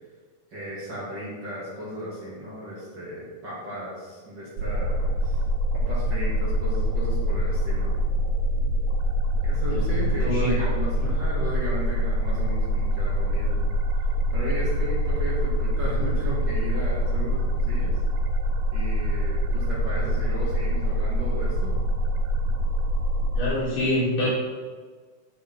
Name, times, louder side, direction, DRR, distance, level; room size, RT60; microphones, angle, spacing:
voice 1, 0.5-5.4 5.7-8.0 9.4-13.6 14.3-17.9 18.7-21.8, equal, 35° right, -7 dB, 2.6 m, -35 dB
sound 1, 4.6-23.5, equal, 75° right, 1.9 m, -25 dB
voice 2, 9.7-10.7 23.3-24.3, left 1 dB, 75° left, -7 dB, 4.8 m, -26 dB
10.0 x 6.9 x 4.5 m, 1.5 s
omnidirectional pair, 3.6 m